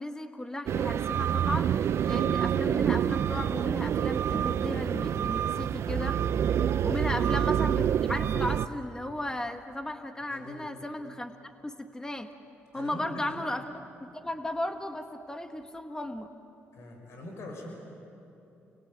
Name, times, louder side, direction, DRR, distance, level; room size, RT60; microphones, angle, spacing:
voice 1, 0.0-6.2 6.8-11.3 11.6-12.3 12.7-16.3, left 1 dB, 15° left, 6 dB, 1.6 m, -35 dB
sound 1, 0.7-8.7, right 9 dB, 65° right, 0.6 m, -27 dB
voice 2, 10.3-10.7 12.7-13.4 16.7-17.8, left 1 dB, 65° left, 1 dB, 6.4 m, -43 dB
29.5 x 21.0 x 9.0 m, 2.9 s
cardioid pair, 80°, 5 cm